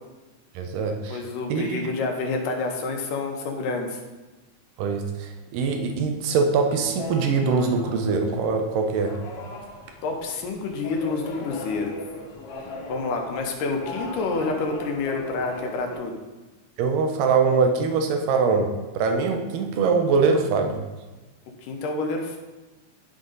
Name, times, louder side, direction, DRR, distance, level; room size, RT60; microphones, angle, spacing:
voice 1, 0.6-1.2 1.5-1.9 4.8-9.1 16.8-18.7 19.0-20.8, right 4 dB, 85° right, 4 dB, 2.3 m, -23 dB
voice 2, 1.1-4.0 10.0-12.0 12.9-16.2 21.6-22.4, left 3 dB, 85° left, 2 dB, 2.6 m, -28 dB
sound 1, 7.0-16.0, left 2 dB, 65° left, 1.5 m, -39 dB
11.0 x 3.8 x 3.9 m, 1.2 s
omnidirectional pair, 3.7 m